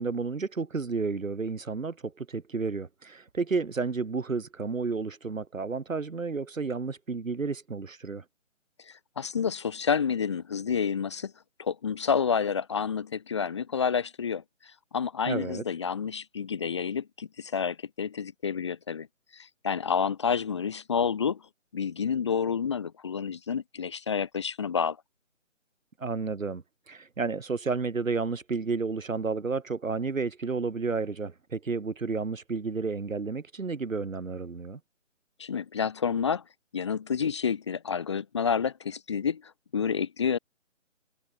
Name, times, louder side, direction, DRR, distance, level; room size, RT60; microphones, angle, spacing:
voice 1, 0.0-8.2 15.3-15.6 26.0-34.8, right 4 dB, 85° right, 2.4 m, -31 dB
voice 2, 8.9-11.3 11.6-19.1 19.3-21.4 21.7-25.0 35.4-36.4 36.7-39.4 39.7-40.4, left 6 dB, 20° left, 1.4 m, -29 dB
hypercardioid pair, 170°, 38 cm